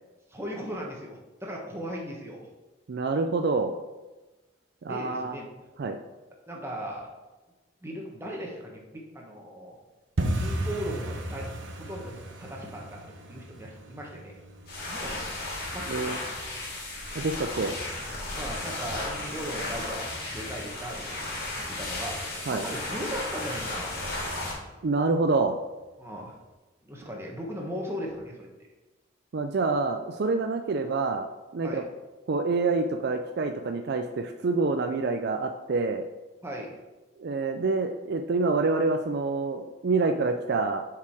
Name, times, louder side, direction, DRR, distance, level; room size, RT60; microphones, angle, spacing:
voice 1, 0.3-2.5 4.9-5.5 6.5-7.1 7.8-9.7 10.4-14.4 14.9-15.4 15.7-16.6 17.7-17.8 18.3-24.1 26.0-26.4 26.8-28.5 31.6-31.8 36.4-36.7 40.2-40.4, equal, 15° right, -1 dB, 1.3 m, -38 dB
voice 2, 2.9-3.7 4.8-5.4 5.8-6.0 15.9-16.2 17.1-17.7 22.5-22.6 24.8-25.6 29.3-31.3 31.5-31.8 32.3-36.0 37.2-40.9, right 3 dB, 55° right, 6 dB, 0.4 m, -27 dB
sound 1, 10.2-20.9 21.1-21.8 22.1-22.4 22.7-23.0 23.3-23.4 23.9-24.5 24.8-24.9 25.4-25.5, right 1 dB, 75° right, 1.0 m, -37 dB
sound 2, 14.6-24.5, left 2 dB, 55° left, 2.1 m, -34 dB
7.0 x 4.8 x 4.7 m, 1.1 s
head